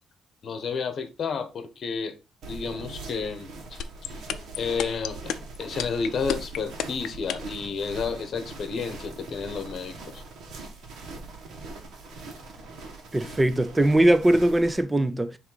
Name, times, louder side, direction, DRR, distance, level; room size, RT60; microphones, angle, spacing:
voice 1, 0.4-2.2 2.5-4.2 4.6-5.3 5.6-10.2, left 5 dB, 45° left, 1.0 m, -31 dB
sound 1, 2.4-14.8, right 3 dB, 70° right, 1.7 m, -41 dB
sound 2, 3.8-7.6, left 10 dB, 90° left, 0.5 m, -29 dB
voice 2, 13.1-15.4, right 1 dB, 10° right, 0.5 m, -21 dB
7.6 x 3.3 x 4.0 m
cardioid pair, 165°, 0 cm